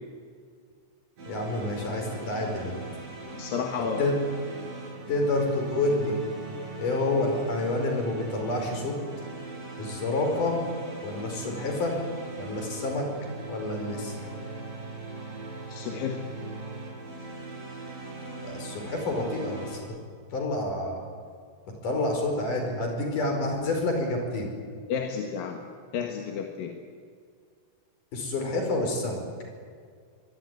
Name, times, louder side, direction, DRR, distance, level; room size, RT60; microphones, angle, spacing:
sound 1, 1.2-19.8, right 3 dB, 85° right, 7.9 m, -40 dB
voice 1, 1.3-2.8 3.8-4.2 5.1-6.2 6.8-8.9 9.8-10.6 11.0-12.0 12.4-13.0 13.5-14.1 18.4-20.0 20.3-21.0 21.8-24.5 28.1-29.2, left 2 dB, 65° left, 3 dB, 6.6 m, -28 dB
voice 2, 3.3-4.1 15.7-16.3 24.9-25.6 25.9-26.8, left 6 dB, 90° left, 2 dB, 3.4 m, -31 dB
24.5 x 22.0 x 9.6 m, 2.1 s
omnidirectional pair, 3.9 m